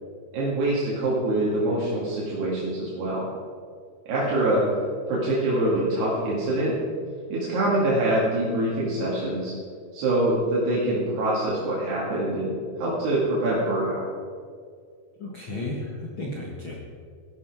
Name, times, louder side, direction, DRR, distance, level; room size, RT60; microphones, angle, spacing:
voice 1, 0.3-3.2 4.1-4.6 5.1-6.7 7.3-9.5 9.9-12.5 12.8-14.0, right 1 dB, 75° right, -7 dB, 4.3 m, -24 dB
voice 2, 15.2-16.8, left 2 dB, 65° left, -3 dB, 1.2 m, -33 dB
15.5 x 11.5 x 4.9 m, 2.2 s
omnidirectional pair, 4.8 m